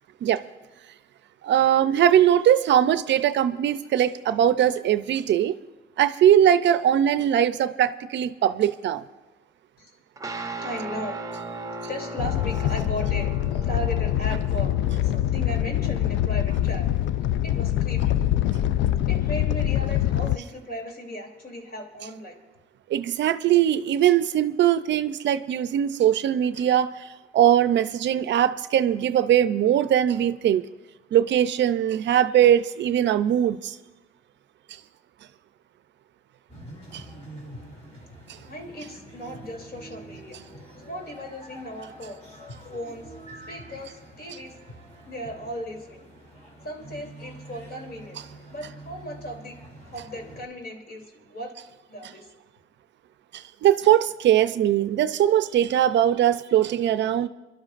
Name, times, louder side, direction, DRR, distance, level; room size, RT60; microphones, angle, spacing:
voice 1, 1.4-5.6 6.0-9.0 22.9-27.1 27.3-30.6 31.1-33.8 36.9-37.0 53.3-57.3, right 10 dB, 65° right, 13 dB, 0.5 m, -21 dB
sound 1, 10.2-20.7, right 1 dB, 15° right, 0.7 m, -39 dB
voice 2, 10.6-11.2 11.9-14.7 15.0-16.9 17.4-18.2 18.5-18.6 19.1-22.4 38.4-40.4 40.9-42.2 42.7-43.1 43.5-44.5 45.1-46.0 46.6-48.2 48.5-49.6 49.8-51.5 51.9-52.3, equal, 50° left, 1 dB, 3.0 m, -36 dB
Animal, 12.2-20.4, left 12 dB, 70° left, 0.4 m, -24 dB
sound 2, 36.5-50.5, right 1 dB, 35° left, 2.7 m, -45 dB
29.0 x 12.0 x 2.5 m, 1.1 s
cardioid pair, 90°, 20 cm